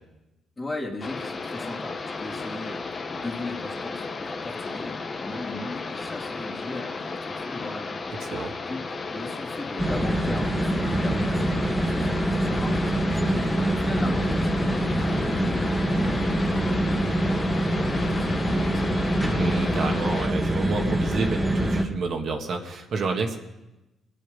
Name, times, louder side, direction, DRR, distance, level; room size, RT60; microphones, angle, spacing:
voice 1, 0.6-8.1 8.4-12.9 13.3-17.4 17.8-19.2, left 2 dB, 20° left, -2 dB, 2.9 m, -38 dB
sound 1, 1.0-20.3, left 4 dB, 40° left, 1.2 m, -34 dB
voice 2, 8.2-8.5 13.2-13.5 19.4-23.4, right 4 dB, 60° right, 2 dB, 1.7 m, -30 dB
sound 2, 9.8-21.8, right 1 dB, 5° right, 1.9 m, -25 dB
23.5 x 8.5 x 5.3 m, 0.99 s
cardioid pair, 90°, 0 cm